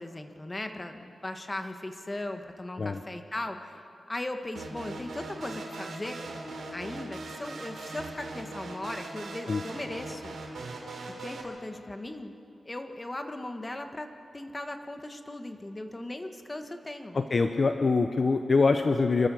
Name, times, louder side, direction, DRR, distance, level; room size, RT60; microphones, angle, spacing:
voice 1, 0.0-6.2 6.7-10.4 11.2-12.3 12.6-17.2, left 1 dB, 20° left, 6 dB, 1.4 m, -38 dB
sound 1, 4.5-11.4, right 2 dB, 90° right, 3.0 m, -40 dB
voice 2, 17.1-19.3, left 4 dB, 45° left, 7 dB, 0.8 m, -24 dB
28.5 x 13.5 x 7.0 m, 2.6 s
wide cardioid pair, 125°, 0 cm